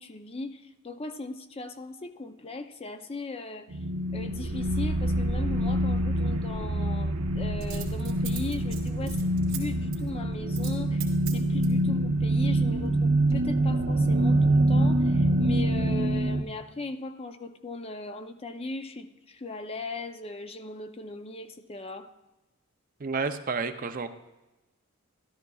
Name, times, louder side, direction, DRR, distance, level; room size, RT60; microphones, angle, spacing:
voice 1, 0.0-3.8 4.1-11.1 11.3-22.1, left 2 dB, 25° left, 8 dB, 0.5 m, -38 dB
sound 1, 3.7-16.4, right 1 dB, 85° right, 0.8 m, -25 dB
Coin (dropping), 5.0-5.1 7.6-9.6 9.9-10.1 10.5-10.8 11.0-11.8 12.4-13.0 13.3-13.4, right 9 dB, 65° right, 1.9 m, -41 dB
voice 2, 23.0-24.1, right 4 dB, 40° right, 8 dB, 0.5 m, -30 dB
13.0 x 12.0 x 2.3 m, 1.0 s
head